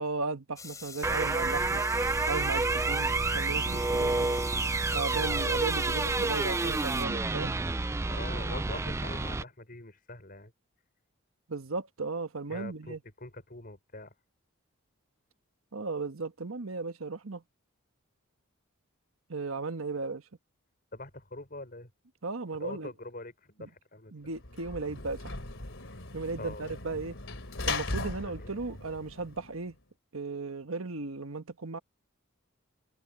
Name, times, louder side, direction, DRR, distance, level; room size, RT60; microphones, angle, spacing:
voice 1, 0.0-1.8 2.3-4.4 4.9-7.5 11.5-13.0 15.7-17.4 19.3-20.2 22.2-22.9 23.6-23.7 24.1-25.3 26.1-27.2 27.7-29.7 30.1-31.8, right 3 dB, 85° right, 1.3 m, -36 dB
sound 1, 0.6-7.0, left 5 dB, 15° left, 3.7 m, -45 dB
sound 2, 1.0-9.4, right 3 dB, 15° right, 0.3 m, -29 dB
voice 2, 8.1-10.5 12.5-14.1 20.9-21.9 22.6-24.1 26.4-26.7 28.2-28.6, left 2 dB, 45° left, 5.8 m, -44 dB
Sliding door / Slam, 24.3-29.7, left 3 dB, 65° left, 3.2 m, -38 dB
head